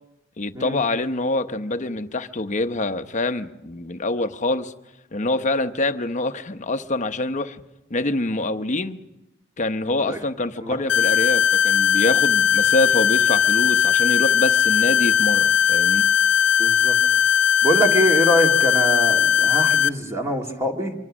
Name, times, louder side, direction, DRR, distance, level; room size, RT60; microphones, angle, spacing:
voice 1, 0.4-4.7 5.1-7.6 7.9-9.0 9.6-16.1, left 2 dB, 40° left, 0.9 m, -25 dB
sound 1, 10.9-19.9, left 8 dB, 65° left, 0.7 m, -18 dB
voice 2, 16.6-16.9 17.6-20.9, equal, 15° right, 2.0 m, -24 dB
25.0 x 24.0 x 6.2 m
head